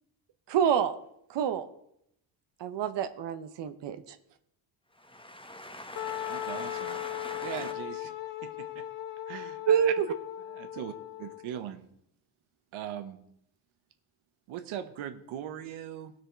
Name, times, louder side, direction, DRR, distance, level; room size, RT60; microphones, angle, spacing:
voice 1, 0.5-1.0 1.3-1.7 2.6-4.2 9.7-10.2, right 8 dB, 60° right, 10 dB, 0.9 m, -27 dB
voice 2, 5.0-7.7, left 1 dB, 10° left, 6 dB, 1.1 m, -42 dB
Wind instrument woodwind instrument, 6.0-11.6, left 14 dB, 60° left, 1.4 m, -38 dB
voice 3, 6.3-7.0 7.4-8.1 8.4-8.8 9.3-9.6 10.5-11.8 12.7-13.2 14.5-16.1, right 10 dB, 80° right, 8 dB, 1.2 m, -40 dB
17.5 x 6.1 x 4.5 m, 0.74 s
cardioid pair, 110°, 47 cm